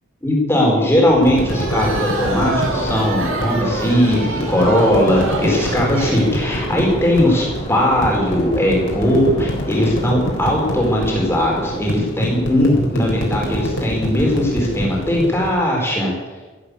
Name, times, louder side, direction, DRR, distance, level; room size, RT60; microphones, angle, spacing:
voice 1, 0.2-16.1, left 1 dB, 10° left, -2 dB, 4.6 m, -18 dB
sound 1, 0.9-11.8, equal, 30° left, 3.6 m, -31 dB
sound 2, 1.2-15.6, equal, 60° left, 4.0 m, -27 dB
sound 3, 1.5-6.3, right 2 dB, 65° right, 2.9 m, -27 dB
13.5 x 11.5 x 8.4 m, 1.3 s
head